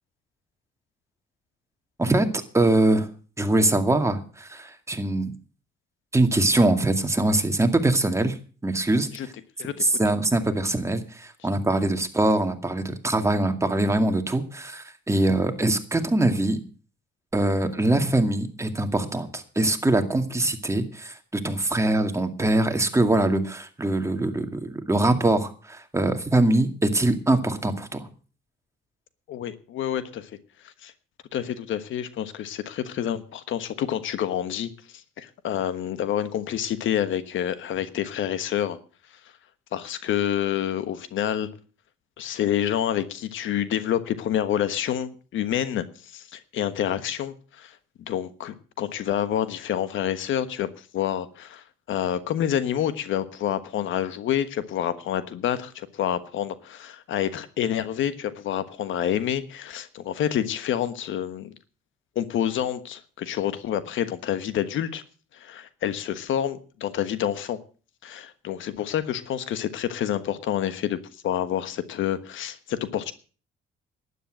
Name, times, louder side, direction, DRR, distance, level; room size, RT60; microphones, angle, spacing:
voice 1, 2.0-3.1 3.4-5.3 6.1-8.4 8.6-9.3 9.8-16.6 17.3-28.1, right 2 dB, 15° right, 2.2 m, -23 dB
voice 2, 29.3-30.3 30.6-30.9 31.3-34.7 35.2-38.8 39.7-41.5 42.2-45.8 46.1-47.8 48.1-61.5 62.1-65.0 65.3-67.6 68.0-73.1, left 10 dB, 75° left, 1.3 m, -28 dB
12.0 x 10.0 x 7.7 m
cardioid pair, 90°, 20 cm